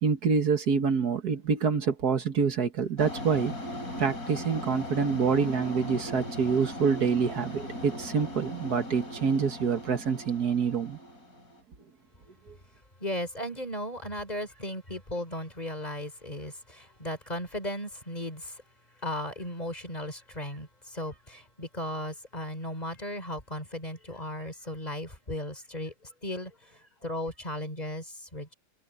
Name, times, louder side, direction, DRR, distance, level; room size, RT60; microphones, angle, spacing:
voice 1, 0.0-3.5 4.0-11.0, right 6 dB, 70° right, 2.1 m, -26 dB
sound 1, 3.0-11.6, left 1 dB, 60° left, 5.3 m, -39 dB
voice 2, 13.0-18.6 19.0-28.5, left 1 dB, 25° left, 4.0 m, -36 dB
omnidirectional pair, 1.8 m